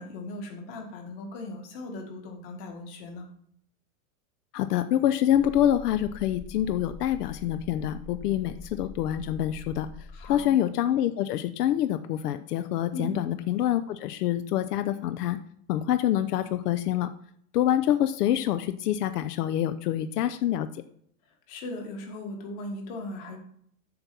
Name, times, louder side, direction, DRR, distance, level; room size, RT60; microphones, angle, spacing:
voice 1, 0.0-3.3 10.1-10.5 12.9-13.2 21.5-23.4, left 2 dB, 40° left, 3 dB, 1.9 m, -38 dB
voice 2, 4.5-9.9 10.3-15.4 15.7-17.1 17.5-20.7, left 11 dB, 85° left, 11 dB, 0.7 m, -26 dB
Steel mill low frequency drone, 5.4-10.5, left 3 dB, 15° left, 0.7 m, -45 dB
7.8 x 4.3 x 6.9 m, 0.65 s
supercardioid pair, 170°, 45 cm